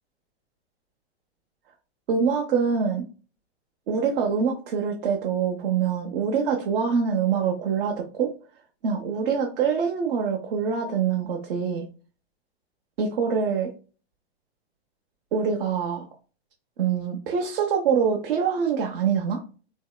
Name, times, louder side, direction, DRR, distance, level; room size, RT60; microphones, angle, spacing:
voice 1, 2.1-3.0 3.9-8.3 8.8-11.9 13.0-13.7 15.3-16.1 16.8-19.4, right 6 dB, 60° right, 1 dB, 0.7 m, -25 dB
3.1 x 2.7 x 2.2 m, 0.36 s
hypercardioid pair, 120°, 32 cm